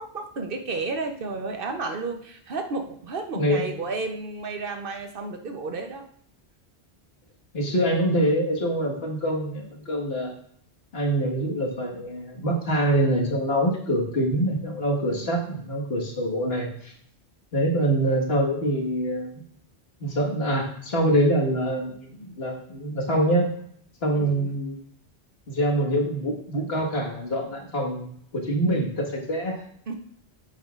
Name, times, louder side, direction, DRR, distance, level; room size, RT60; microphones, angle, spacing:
voice 1, 0.0-6.0 15.1-15.6 24.1-24.6 29.9-30.0, right 3 dB, 60° right, 5 dB, 1.0 m, -32 dB
voice 2, 3.4-3.7 7.5-10.3 10.9-16.9 17.5-19.4 20.0-23.5 24.0-24.8 25.5-29.6, right 1 dB, 65° left, -1 dB, 1.8 m, -25 dB
9.4 x 7.4 x 2.4 m, 0.66 s
omnidirectional pair, 1.1 m